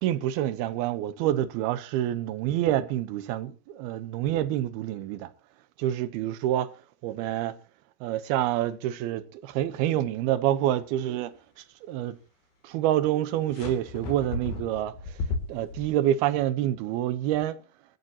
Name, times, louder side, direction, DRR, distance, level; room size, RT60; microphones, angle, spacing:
voice 1, 0.0-5.3 5.8-6.7 7.0-7.6 8.0-11.3 11.8-12.2 12.6-14.9 15.5-17.6, right 12 dB, 90° right, 2.9 m, -27 dB
sound 1, 13.5-15.9, left 3 dB, 80° left, 4.7 m, -34 dB
24.5 x 14.0 x 2.9 m
omnidirectional pair, 4.3 m